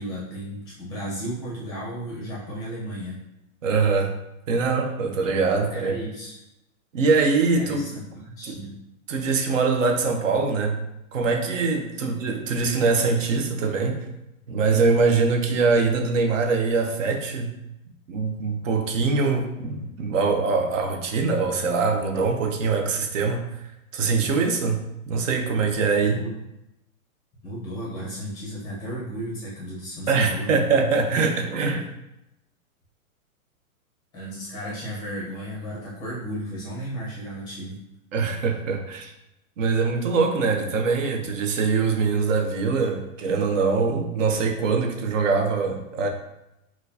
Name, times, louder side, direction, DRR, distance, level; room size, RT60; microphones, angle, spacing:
voice 1, 0.0-3.2 5.7-6.4 7.6-8.7 26.0-26.3 27.4-30.5 34.1-37.8, equal, 10° left, -6 dB, 0.6 m, -34 dB
voice 2, 3.6-4.1 4.5-5.9 6.9-7.8 8.4-8.6 9.1-10.9 11.1-14.0 14.5-17.5 18.1-23.4 23.9-24.8 25.1-26.2 30.1-31.8 38.1-39.1 39.6-46.1, right 4 dB, 60° right, 4 dB, 0.7 m, -23 dB
4.3 x 2.3 x 2.7 m, 0.88 s
hypercardioid pair, 160°, 43 cm